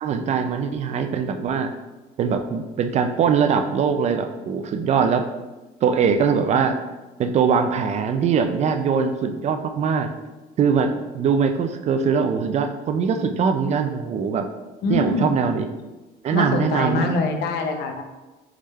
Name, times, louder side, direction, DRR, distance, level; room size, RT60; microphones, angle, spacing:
voice 1, 0.0-1.7 2.2-5.2 5.8-6.8 7.2-10.1 10.6-14.5 14.9-15.7 16.2-17.1, right 6 dB, 40° right, 8 dB, 0.4 m, -22 dB
voice 2, 14.8-15.4 16.3-18.0, left 3 dB, 75° left, 5 dB, 0.7 m, -24 dB
3.7 x 3.3 x 4.2 m, 1.1 s
cardioid pair, 110°, 17 cm